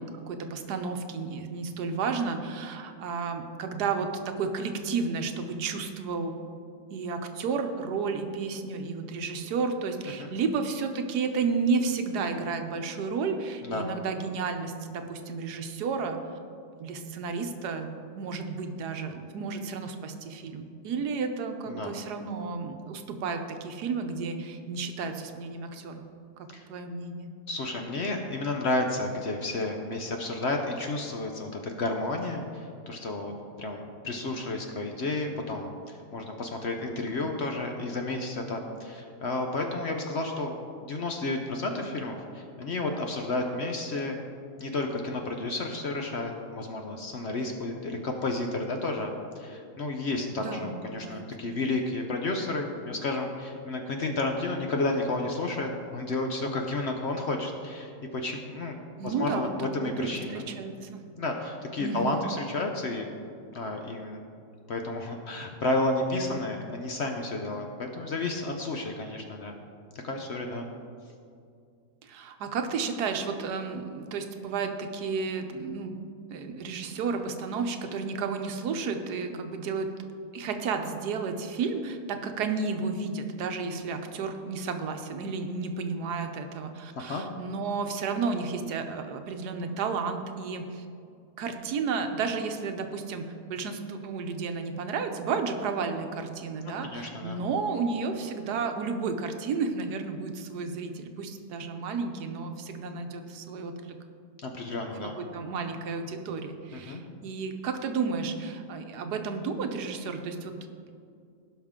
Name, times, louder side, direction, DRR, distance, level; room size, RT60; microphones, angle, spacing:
voice 1, 0.0-6.3 6.9-16.2 16.8-17.9 18.2-26.0 26.4-27.3 50.4-51.2 59.0-61.0 61.8-62.2 72.0-76.0 76.3-79.9 80.3-90.8 91.4-104.0 105.1-110.5, right 4 dB, 80° right, 6 dB, 1.3 m, -32 dB
voice 2, 27.5-33.3 33.6-40.6 40.8-44.2 44.6-58.8 59.0-60.4 61.2-63.0 63.5-64.2 64.7-69.5 70.0-70.7 87.0-87.2 96.8-97.4 104.4-105.2 106.7-107.0, left 2 dB, 55° left, 3 dB, 0.8 m, -31 dB
16.5 x 5.8 x 3.6 m, 2.3 s
omnidirectional pair, 1.7 m